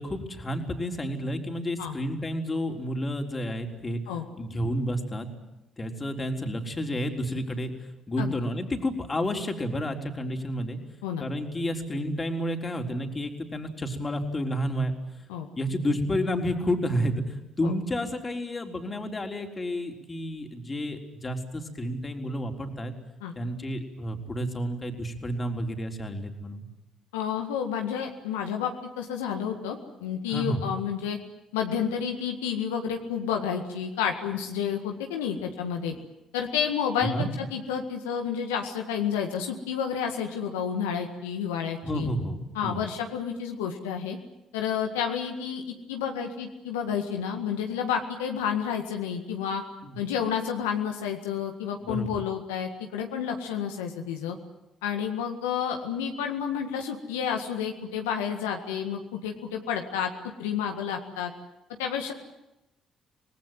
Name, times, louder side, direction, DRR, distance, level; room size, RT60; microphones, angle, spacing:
voice 1, 0.0-4.0 4.4-5.3 5.8-7.7 8.1-10.8 11.2-14.9 15.6-22.9 23.4-26.7 30.3-30.6 35.9-36.0 37.0-37.3 41.8-42.8 49.8-50.0 51.9-52.2, equal, 30° left, 4 dB, 3.9 m, -30 dB
voice 2, 27.1-31.2 31.5-35.9 36.3-42.1 42.5-44.2 44.5-49.6 50.0-54.4 54.8-60.1 60.4-61.3 61.8-62.1, left 8 dB, 85° left, 3 dB, 1.8 m, -30 dB
26.5 x 19.0 x 9.2 m, 0.93 s
hypercardioid pair, 55°, 0 cm